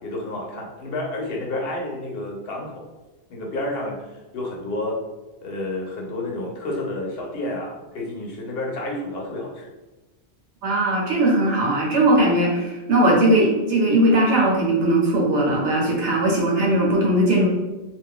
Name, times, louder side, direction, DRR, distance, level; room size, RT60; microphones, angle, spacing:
voice 1, 0.0-2.8 3.3-4.0 4.3-5.0 5.4-9.7, left 1 dB, 65° left, -1 dB, 0.8 m, -30 dB
voice 2, 10.6-17.5, right 1 dB, 80° right, -2 dB, 1.1 m, -19 dB
2.5 x 2.3 x 3.5 m, 1.1 s
omnidirectional pair, 1.2 m